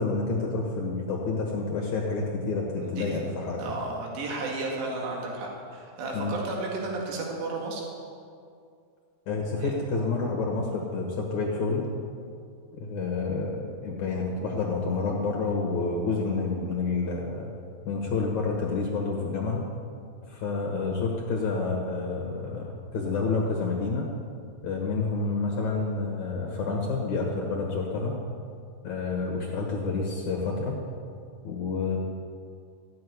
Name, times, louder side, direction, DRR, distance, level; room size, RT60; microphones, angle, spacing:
voice 1, 0.0-3.6 6.1-6.3 9.3-11.9 12.7-17.5 17.9-19.7 20.3-24.1 24.6-28.1 28.8-30.8 31.4-32.0, left 3 dB, 60° left, 0 dB, 2.2 m, -29 dB
voice 2, 2.8-3.3 3.6-7.9 9.6-9.7, right 2 dB, 75° right, -1 dB, 4.3 m, -33 dB
15.0 x 7.7 x 9.5 m, 2.3 s
omnidirectional pair, 4.9 m